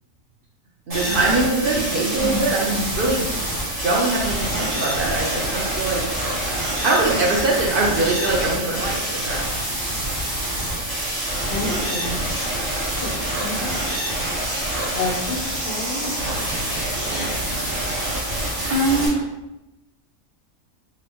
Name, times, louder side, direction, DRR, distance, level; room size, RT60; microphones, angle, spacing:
sound 1, 0.9-19.1, right 1 dB, 30° right, 1.0 m, -26 dB
voice 1, 0.9-3.3 3.8-6.1 6.8-9.4, right 2 dB, 60° right, -3 dB, 0.6 m, -22 dB
voice 2, 2.2-3.0 18.7-19.2, right 1 dB, 90° right, -1 dB, 1.2 m, -23 dB
voice 3, 11.5-12.2 13.0-13.1 13.4-13.8 14.9-16.1, left 2 dB, 60° left, -3 dB, 0.6 m, -29 dB
4.0 x 2.0 x 2.8 m, 0.95 s
omnidirectional pair, 1.4 m